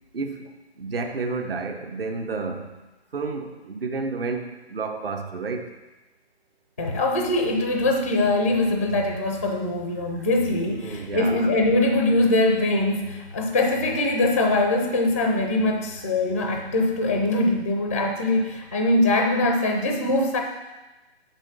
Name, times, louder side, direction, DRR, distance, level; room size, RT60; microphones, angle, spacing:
voice 1, 0.1-0.5 0.8-2.8 3.1-5.7 9.1-9.2 10.1-10.3 10.8-11.4, right 4 dB, 60° right, 5 dB, 1.2 m, -31 dB
voice 2, 6.8-20.4, left 2 dB, 15° left, 3 dB, 0.4 m, -22 dB
6.4 x 6.1 x 6.8 m, 1.1 s
figure-of-eight pair, 150°, 33 cm